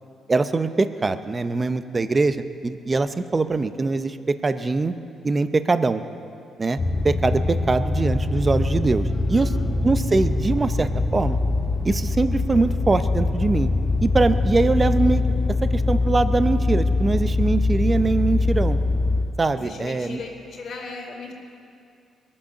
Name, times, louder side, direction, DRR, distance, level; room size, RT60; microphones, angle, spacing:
voice 1, 0.3-4.9 5.2-6.0 6.6-6.8 7.0-9.5 9.8-11.4 11.8-13.7 14.0-15.2 15.6-18.8 19.4-20.2, right 3 dB, 30° right, 11 dB, 0.7 m, -22 dB
sound 1, 6.8-19.3, left 2 dB, 35° left, 1.0 m, -23 dB
voice 2, 9.1-9.7 19.5-21.3, left 3 dB, 60° left, -7 dB, 2.7 m, -37 dB
22.0 x 8.7 x 6.6 m, 2.4 s
cardioid pair, 90°, 0 cm